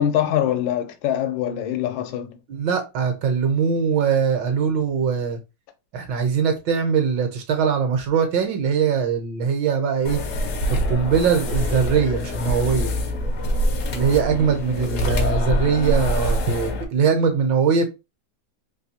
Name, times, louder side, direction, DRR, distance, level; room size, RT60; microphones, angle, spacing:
voice 1, 0.0-2.4, left 10 dB, 85° left, 1.3 m, -23 dB
voice 2, 2.5-5.4 5.9-10.2 10.9-12.9 13.9-17.9, right 6 dB, 75° right, 1.5 m, -21 dB
sound 1, 10.0-16.8, left 1 dB, 65° left, 0.8 m, -24 dB
3.5 x 2.7 x 2.7 m
omnidirectional pair, 2.0 m